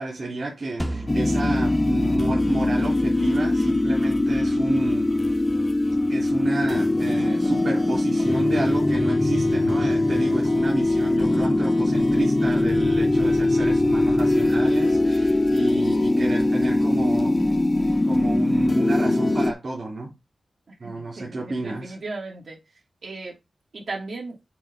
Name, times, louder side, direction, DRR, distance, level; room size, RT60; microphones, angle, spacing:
voice 1, 0.0-5.1 6.1-17.4 18.0-20.1 20.8-22.0, right 2 dB, 50° right, 3.5 m, -30 dB
sound 1, 0.8-5.9, equal, 5° right, 0.9 m, -34 dB
sound 2, 1.1-19.5, left 2 dB, 25° left, 0.8 m, -21 dB
voice 2, 20.8-22.6 23.0-23.3 23.7-24.4, right 3 dB, 70° right, 2.9 m, -36 dB
8.9 x 4.2 x 3.9 m
wide cardioid pair, 90°, 0 cm